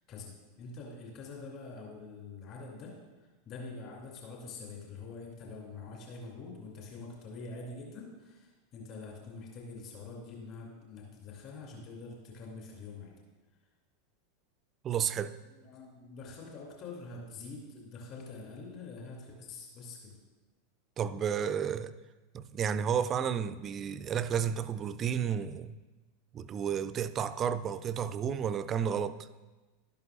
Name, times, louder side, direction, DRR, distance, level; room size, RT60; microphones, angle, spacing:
voice 1, 0.6-13.1 15.4-20.2, left 3 dB, 35° left, 2.6 m, -45 dB
voice 2, 14.8-15.4 21.0-21.9 22.3-25.8 26.3-29.2, right 8 dB, 30° right, 0.4 m, -32 dB
12.5 x 12.0 x 2.5 m
figure-of-eight pair, 85°, 0 cm